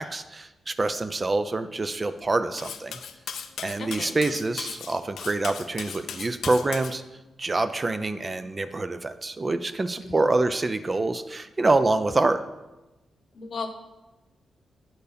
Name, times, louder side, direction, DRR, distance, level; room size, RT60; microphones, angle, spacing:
voice 1, 0.0-3.0 3.6-7.0 7.4-12.4, right 2 dB, 25° right, 10 dB, 0.4 m, -26 dB
Cutlery silverware, 2.6-6.9, left 7 dB, 85° left, 0.5 m, -37 dB
voice 2, 3.8-4.1 10.0-10.3 13.3-13.7, left 4 dB, 55° left, 6 dB, 1.0 m, -35 dB
9.3 x 4.5 x 5.0 m, 1.0 s
wide cardioid pair, 125°, 0 cm